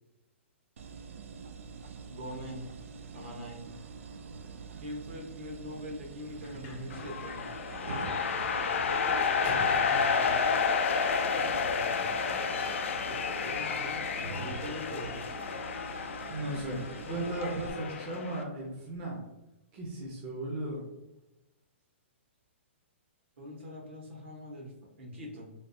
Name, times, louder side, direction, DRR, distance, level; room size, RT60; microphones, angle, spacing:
sound 1, 0.8-17.7, right 5 dB, 85° right, 0.4 m, -46 dB
voice 1, 2.1-2.7 3.1-3.6 4.8-7.4 8.9-10.3 13.1-15.1 23.4-25.5, equal, 65° right, -1 dB, 1.1 m, -42 dB
Sliding door, 6.2-10.7 11.3-16.1, right 1 dB, 25° left, 0.5 m, -49 dB
sound 2, 6.9-18.4, left 5 dB, 80° left, 0.4 m, -31 dB
voice 2, 16.3-19.2 19.7-20.8, right 2 dB, 25° right, -3 dB, 0.6 m, -36 dB
3.3 x 2.4 x 2.7 m, 0.95 s
hypercardioid pair, 165°, 7 cm